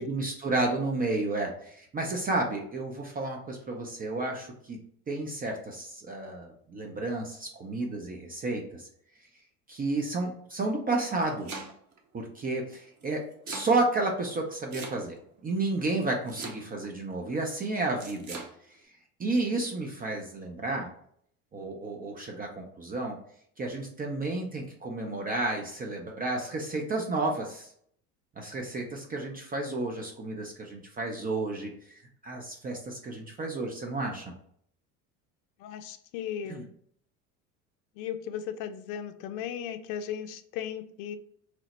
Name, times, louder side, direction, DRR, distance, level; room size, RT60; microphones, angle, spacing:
voice 1, 0.0-4.8 5.1-8.9 9.7-11.5 12.1-15.2 15.4-18.4 19.2-20.9 21.5-23.2 23.6-27.7 28.4-34.3 36.5-36.6, right 2 dB, 20° right, 1 dB, 0.4 m, -31 dB
Domestic sounds home sounds, 11.1-12.0 13.0-13.7 14.7-15.3 16.3-16.9 18.0-18.5, right 4 dB, 40° right, 0.8 m, -41 dB
voice 2, 35.6-36.7 38.0-41.2, left 9 dB, 65° left, 10 dB, 0.5 m, -36 dB
3.0 x 2.0 x 3.9 m, 0.66 s
hypercardioid pair, 75°, 44 cm